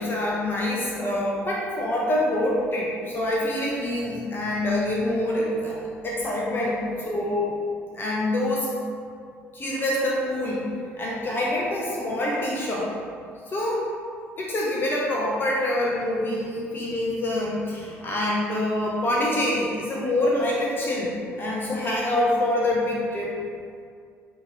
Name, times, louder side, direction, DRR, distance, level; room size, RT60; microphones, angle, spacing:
voice 1, 0.0-5.8 6.0-7.6 7.9-8.7 9.5-10.7 11.0-12.9 13.5-13.9 14.4-23.4, left 1 dB, 30° left, -3 dB, 0.5 m, -26 dB
2.8 x 2.6 x 3.9 m, 2.2 s
figure-of-eight pair, 55°, 7 cm